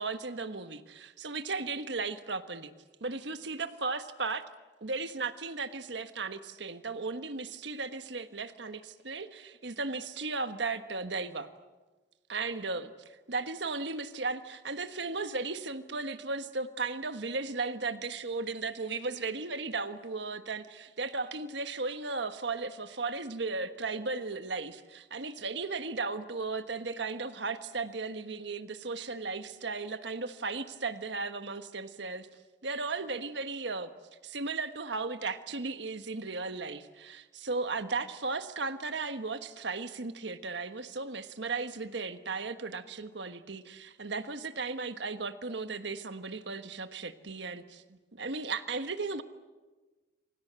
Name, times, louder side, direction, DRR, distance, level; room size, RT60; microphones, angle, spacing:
voice 1, 0.0-2.7 3.0-4.4 4.8-11.5 12.3-32.3 32.6-33.9 34.2-49.2, right 3 dB, 70° right, 10 dB, 1.4 m, -36 dB
28.0 x 25.0 x 8.1 m, 1.2 s
head